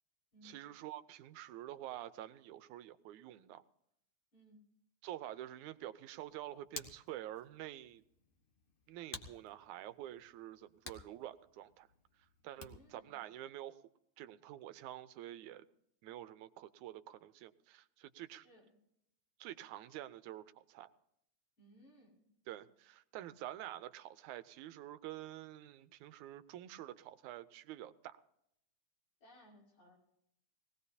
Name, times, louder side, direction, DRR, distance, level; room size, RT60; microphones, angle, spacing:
voice 1, 0.4-3.6 5.0-8.0 8.9-11.9 12.4-13.8 14.2-15.7 16.0-18.5 19.4-20.9 22.5-28.2, right 13 dB, 90° right, 12 dB, 2.2 m, -48 dB
Hands, 6.1-13.0, left 3 dB, 85° left, 0.4 m, -54 dB
voice 2, 12.6-13.3 18.4-18.8 21.6-22.2 29.2-30.0, equal, 70° left, -3 dB, 7.1 m, -62 dB
21.0 x 18.0 x 2.8 m, 0.75 s
omnidirectional pair, 3.4 m